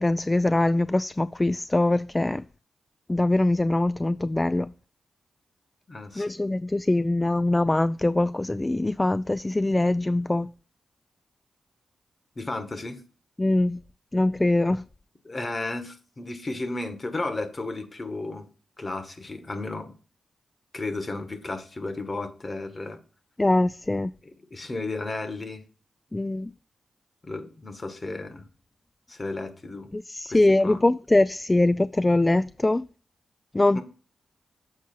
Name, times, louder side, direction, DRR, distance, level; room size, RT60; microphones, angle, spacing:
voice 1, 0.0-2.4 3.1-4.7 6.2-10.5 13.4-13.8 14.1-14.8 23.4-24.1 26.1-26.5 29.9-32.9 33.5-33.8, left 2 dB, 25° left, 0.3 m, -23 dB
voice 2, 5.9-6.3 12.4-13.0 15.2-18.5 18.8-19.9 20.7-23.0 24.5-25.7 27.2-28.5 29.1-29.9 30.3-30.8 33.7-33.8, left 2 dB, 40° left, 1.6 m, -33 dB
7.4 x 4.5 x 4.5 m
cardioid pair, 50°, 0 cm